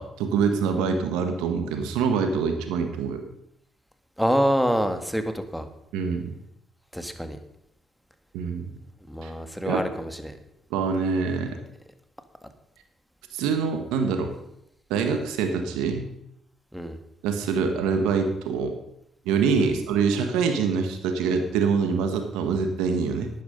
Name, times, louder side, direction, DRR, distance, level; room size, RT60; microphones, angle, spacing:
voice 1, 0.0-3.2 5.9-6.3 8.3-8.7 9.2-9.3 9.7-9.8 10.7-11.6 13.3-14.3 14.9-16.1 17.2-18.7 19.2-23.3, right 5 dB, 90° right, 6 dB, 1.4 m, -25 dB
voice 2, 4.2-5.7 6.9-7.4 9.1-10.3 16.7-17.0 19.6-19.7, equal, ahead, 8 dB, 1.9 m, -26 dB
12.0 x 9.4 x 5.3 m, 0.80 s
supercardioid pair, 55°, 0 cm